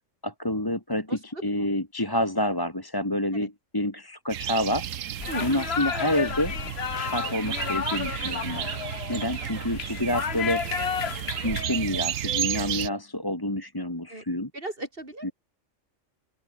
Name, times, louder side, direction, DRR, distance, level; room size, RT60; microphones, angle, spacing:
voice 1, 0.2-4.9 5.4-6.6 6.9-8.7 9.1-10.6 11.4-14.5 15.2-15.3, left 1 dB, 15° left, 2.5 m, -28 dB
voice 2, 1.1-1.7 3.3-3.5 5.3-5.6 14.1-14.2 14.5-15.3, right 1 dB, 45° right, 5.0 m, -37 dB
sound 1, 4.3-12.9, right 10 dB, 75° right, 1.2 m, -32 dB
sound 2, 5.2-11.6, left 8 dB, 55° left, 1.2 m, -32 dB
open air
omnidirectional pair, 1.4 m